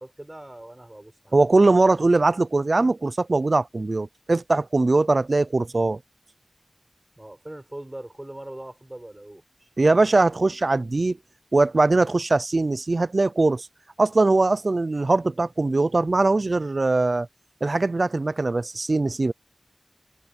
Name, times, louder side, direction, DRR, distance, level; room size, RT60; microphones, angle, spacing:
voice 1, 0.0-1.4 7.2-9.7, right 1 dB, 30° right, 6.2 m, -41 dB
voice 2, 1.3-6.0 9.8-11.2 11.5-13.7 14.0-17.3 17.6-19.3, right 3 dB, 75° right, 0.5 m, -21 dB
wide cardioid pair, 55°, 0 cm